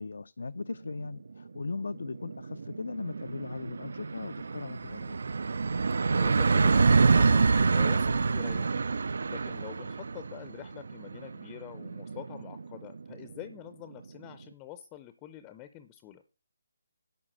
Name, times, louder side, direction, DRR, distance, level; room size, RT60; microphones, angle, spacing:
voice 1, 0.0-5.2, left 3 dB, 75° left, 0.4 m, -38 dB
sound 1, 1.1-1.2 1.6-1.7 1.9-13.3, right 4 dB, 65° right, 0.4 m, -27 dB
voice 2, 5.9-8.8 9.3-16.2, left 13 dB, 15° left, 0.5 m, -46 dB
11.0 x 4.0 x 7.6 m
hypercardioid pair, 160°, 0 cm